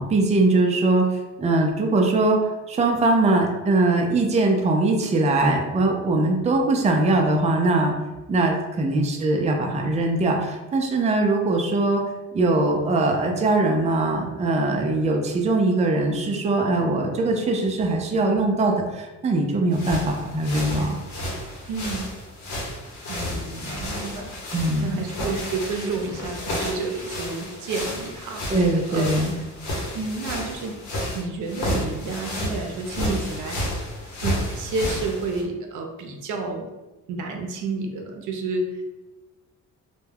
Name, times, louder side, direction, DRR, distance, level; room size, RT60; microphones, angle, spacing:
voice 1, 0.0-7.9 8.3-20.9 24.5-25.0 28.5-29.3, right 2 dB, 25° right, 2 dB, 0.4 m, -21 dB
sound 1, 19.7-35.4, equal, 70° left, 0.9 m, -31 dB
voice 2, 21.7-22.1 23.1-24.3 24.8-29.1 29.9-30.7 31.1-33.7 34.2-36.7 37.1-38.7, right 3 dB, 80° right, 3 dB, 0.5 m, -30 dB
2.2 x 2.1 x 3.3 m, 1.1 s
cardioid pair, 90°, 30 cm